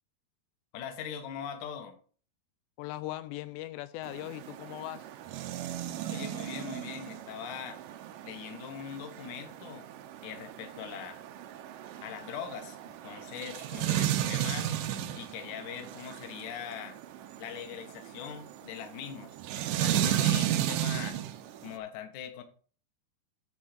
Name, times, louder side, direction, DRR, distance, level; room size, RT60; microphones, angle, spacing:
voice 1, 0.7-2.0 6.1-7.8 8.2-9.9 10.2-11.2 12.0-14.7 15.1-17.0 17.4-19.4 19.8-21.2 21.6-22.4, left 8 dB, 60° left, 2.2 m, -41 dB
voice 2, 2.8-5.1, left 16 dB, 85° left, 2.7 m, -39 dB
sound 1, 4.0-21.7, right 11 dB, 85° right, 1.9 m, -34 dB
10.5 x 4.4 x 6.6 m
omnidirectional pair, 5.0 m